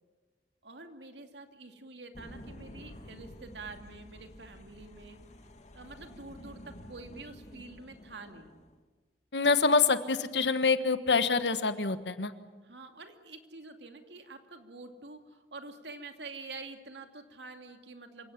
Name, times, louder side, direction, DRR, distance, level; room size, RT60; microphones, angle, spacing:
voice 1, 0.6-5.2 5.7-8.5 12.6-18.3, right 3 dB, 75° right, 6 dB, 2.5 m, -47 dB
sound 1, 2.1-8.8, left 1 dB, 40° left, 2.0 m, -50 dB
voice 2, 9.3-12.3, left 4 dB, 75° left, 11 dB, 1.4 m, -26 dB
27.0 x 17.0 x 9.9 m, 1.3 s
head